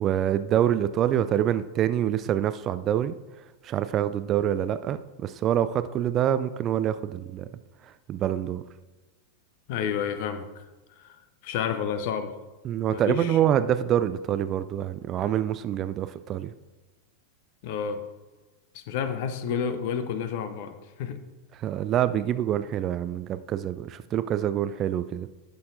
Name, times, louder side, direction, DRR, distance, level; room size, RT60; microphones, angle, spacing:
voice 1, 0.0-3.1 3.6-7.5 8.1-8.6 12.6-16.5 21.6-25.3, right 10 dB, 30° right, 13 dB, 0.3 m, -26 dB
voice 2, 9.7-10.7 11.0-11.2 11.4-12.3 12.9-13.4 17.6-18.0 18.7-21.2, left 7 dB, 50° left, 10 dB, 0.7 m, -30 dB
11.0 x 6.8 x 2.6 m, 1.1 s
figure-of-eight pair, 90°, 0 cm